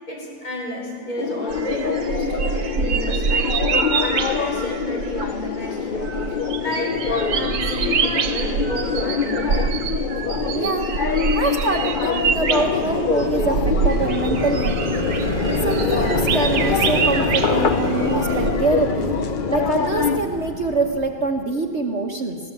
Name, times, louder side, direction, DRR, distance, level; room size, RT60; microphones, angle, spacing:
voice 1, 0.1-9.7, equal, 50° left, -2 dB, 6.0 m, -31 dB
sound 1, 1.2-20.2, left 6 dB, 80° left, 0.4 m, -25 dB
sound 2, 1.5-18.5, right 6 dB, 70° right, 1.6 m, -26 dB
voice 2, 10.5-10.9 11.3-15.1 15.6-19.1 19.5-22.4, right 3 dB, 45° right, 2 dB, 1.3 m, -24 dB
sound 3, 11.6-21.4, left 2 dB, 25° left, 1.2 m, -27 dB
21.0 x 17.0 x 7.3 m, 2.3 s
omnidirectional pair, 1.9 m